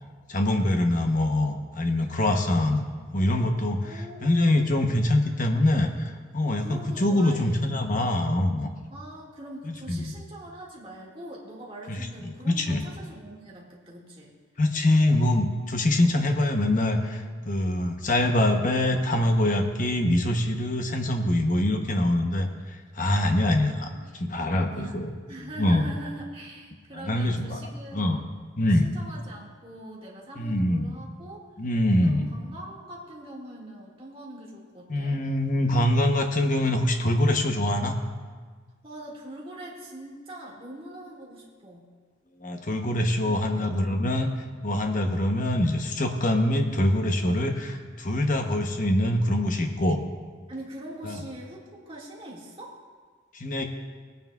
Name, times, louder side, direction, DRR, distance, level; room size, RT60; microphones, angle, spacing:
voice 1, 0.3-2.8 3.1-3.9 4.2-5.9 6.3-8.7 9.7-10.1 11.9-12.8 14.6-22.5 23.0-25.1 25.6-25.9 27.0-27.6 27.9-28.2 28.6-28.9 30.4-30.9 31.6-32.3 34.9-38.0 42.4-44.3 44.6-50.0 51.0-51.2 53.3-53.6, left 1 dB, 40° left, 4 dB, 0.9 m, -24 dB
voice 2, 3.8-5.1 5.5-5.6 6.4-7.7 8.9-14.3 23.3-24.3 24.6-25.0 25.3-28.2 28.7-31.5 32.0-35.3 38.8-41.9 43.2-43.7 50.5-52.8, right 1 dB, 30° right, -4 dB, 2.0 m, -43 dB
18.5 x 9.2 x 2.4 m, 1.5 s
head